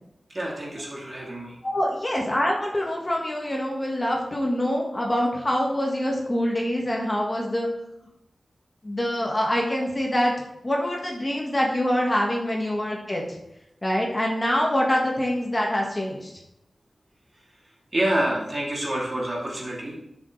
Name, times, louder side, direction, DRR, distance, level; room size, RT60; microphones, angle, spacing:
voice 1, 0.3-1.5 17.9-20.0, right 1 dB, 40° right, -4 dB, 2.9 m, -27 dB
voice 2, 1.6-7.7 8.8-10.3 10.6-13.2 13.8-16.3, equal, 25° left, -1 dB, 1.6 m, -25 dB
11.5 x 6.6 x 3.3 m, 0.85 s
wide cardioid pair, 85°, 0 cm